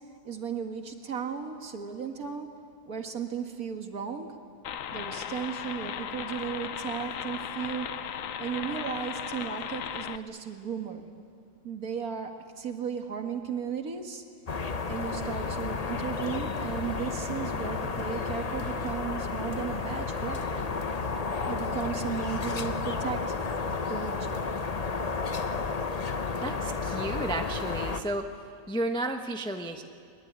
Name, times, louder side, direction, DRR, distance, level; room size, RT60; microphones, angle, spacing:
voice 1, 0.2-2.5 2.9-4.3 4.9-7.9 8.4-11.1 11.6-14.2 14.9-20.7 21.5-23.4 23.9-24.5, right 7 dB, 50° right, 5 dB, 2.0 m, -35 dB
sound 1, 4.6-10.2, left 9 dB, 60° left, 0.9 m, -36 dB
sound 2, 14.5-28.0, left 4 dB, 45° left, 0.5 m, -32 dB
voice 2, 26.4-28.3 28.7-29.8, right 1 dB, 5° left, 5 dB, 0.6 m, -32 dB
22.0 x 21.0 x 9.5 m, 2.3 s
omnidirectional pair, 2.0 m